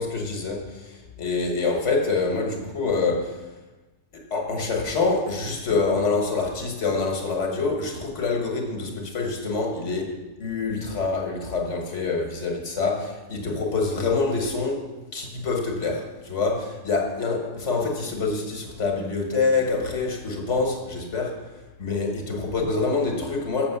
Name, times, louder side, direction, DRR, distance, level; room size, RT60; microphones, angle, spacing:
voice 1, 0.0-3.4 4.1-21.4 21.8-23.8, left 4 dB, 85° left, 3 dB, 1.7 m, -26 dB
7.2 x 6.8 x 6.7 m, 1.1 s
omnidirectional pair, 1.2 m